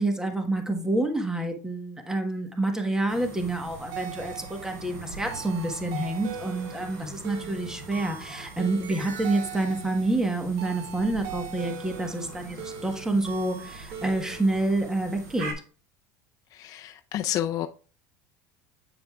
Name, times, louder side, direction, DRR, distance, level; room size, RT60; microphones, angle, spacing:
voice 1, 0.0-15.5, right 2 dB, 5° right, 1.2 m, -28 dB
sound 1, 3.1-15.5, right 2 dB, 90° right, 2.5 m, -43 dB
sound 2, 3.9-14.6, right 8 dB, 65° right, 1.3 m, -41 dB
voice 2, 16.5-17.7, left 12 dB, 45° left, 0.5 m, -30 dB
8.7 x 5.1 x 2.4 m
supercardioid pair, 110°, 9 cm